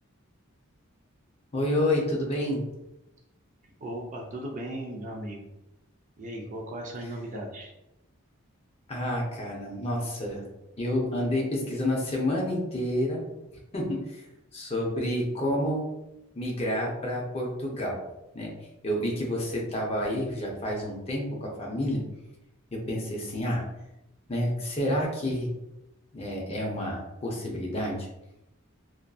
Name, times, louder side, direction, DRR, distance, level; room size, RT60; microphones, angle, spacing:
voice 1, 1.5-2.6 8.9-10.5 10.8-13.2 13.7-14.3 14.5-15.9 16.3-18.0 18.3-18.5 18.8-22.0 22.7-23.6 24.3-25.5 26.1-28.1, left 1 dB, 30° left, -1 dB, 0.5 m, -29 dB
voice 2, 3.8-5.5 6.2-7.7, right 1 dB, 35° right, 1 dB, 0.4 m, -37 dB
2.5 x 2.3 x 2.2 m, 0.91 s
head